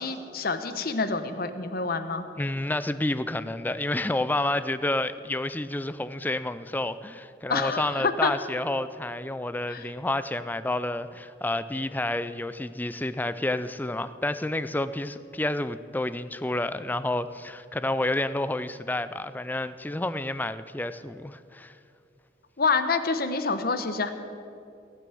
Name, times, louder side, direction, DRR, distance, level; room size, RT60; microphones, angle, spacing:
voice 1, 0.0-2.2 7.5-8.3 9.7-9.8 22.6-24.1, left 4 dB, 55° left, 9 dB, 1.0 m, -27 dB
voice 2, 2.4-21.7, left 1 dB, 10° left, 13 dB, 0.4 m, -29 dB
17.5 x 9.2 x 6.9 m, 2.5 s
head